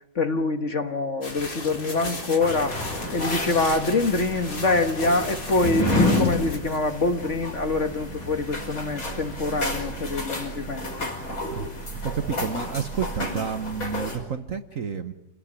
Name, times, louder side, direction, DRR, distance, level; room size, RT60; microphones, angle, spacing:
voice 1, 0.1-2.8 3.1-11.1, left 3 dB, 40° left, 7 dB, 1.7 m, -25 dB
sound 1, 1.2-7.6, left 2 dB, 65° left, 4.4 m, -37 dB
sound 2, 2.4-14.2, left 1 dB, 85° left, 6.4 m, -30 dB
voice 2, 12.1-15.1, right 7 dB, 50° right, 9 dB, 1.3 m, -30 dB
29.0 x 18.5 x 10.0 m, 0.93 s
omnidirectional pair, 2.1 m